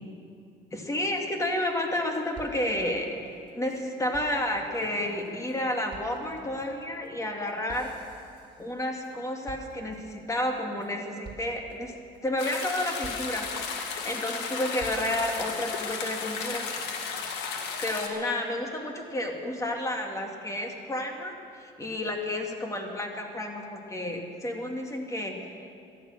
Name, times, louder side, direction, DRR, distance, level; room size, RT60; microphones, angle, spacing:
voice 1, 0.7-3.1 3.5-7.9 8.6-11.9 12.2-13.5 14.0-16.7 17.8-25.5, left 1 dB, 20° left, 2 dB, 2.2 m, -31 dB
sound 1, 1.5-1.6 1.8-1.9 2.1-3.8 4.1-9.2 9.5-10.2 10.6-10.9 11.2-11.7 12.1-12.6 13.0-14.0 14.4-15.3, right 4 dB, 30° right, 3.1 m, -49 dB
sound 2, 12.4-18.1, left 5 dB, 90° left, 2.0 m, -34 dB
18.0 x 12.0 x 6.6 m, 2.6 s
cardioid pair, 110°, 17 cm